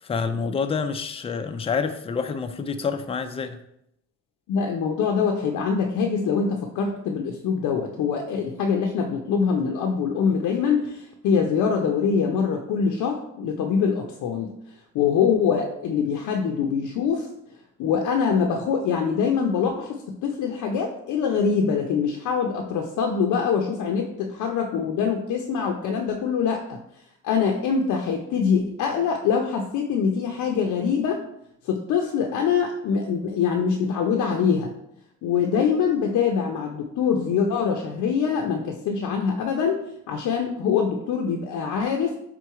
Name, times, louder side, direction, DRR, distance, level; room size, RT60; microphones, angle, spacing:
voice 1, 0.0-3.6, left 5 dB, 20° left, 8 dB, 0.4 m, -27 dB
voice 2, 4.5-14.5 14.9-17.3 17.8-26.8 27.2-31.2 31.7-34.7 35.2-39.8 40.1-42.2, left 6 dB, 85° left, 2 dB, 0.6 m, -24 dB
3.7 x 3.0 x 4.6 m, 0.78 s
cardioid pair, 90°, 30 cm